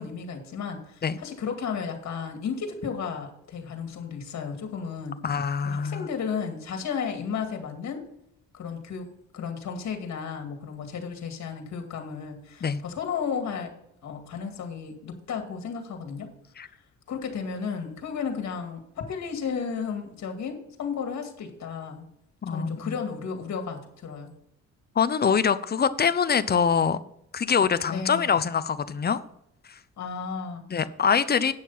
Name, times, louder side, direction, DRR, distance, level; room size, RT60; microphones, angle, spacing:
voice 1, 0.0-5.2 5.6-8.0 8.5-13.7 14.0-16.3 17.1-22.1 22.5-24.3 27.9-28.3 30.0-30.6, left 6 dB, 65° left, 5 dB, 2.2 m, -33 dB
voice 2, 5.2-6.1 12.6-12.8 16.6-16.7 22.4-22.9 25.0-27.0 27.3-29.2 29.7-29.8 30.7-31.5, left 6 dB, 35° left, 14 dB, 0.7 m, -24 dB
9.4 x 6.4 x 5.5 m, 0.76 s
cardioid pair, 90°, 30 cm